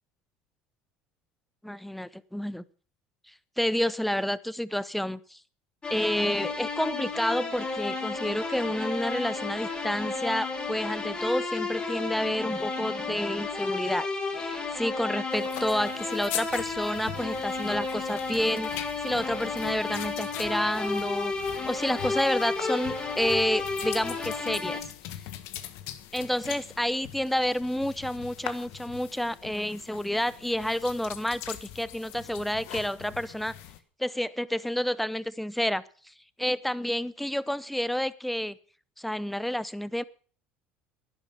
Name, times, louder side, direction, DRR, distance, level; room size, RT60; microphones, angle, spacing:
voice 1, 1.6-2.6 3.3-5.4 5.9-21.3 21.7-24.8 26.1-33.5 34.0-36.1 36.4-38.6 39.0-40.0, equal, ahead, 18 dB, 0.7 m, -29 dB
sound 1, 5.8-24.8, left 3 dB, 20° left, 3.6 m, -32 dB
sound 2, 15.3-33.8, left 12 dB, 75° left, 1.5 m, -42 dB
11.5 x 10.5 x 6.8 m, 0.42 s
supercardioid pair, 105°, 5 cm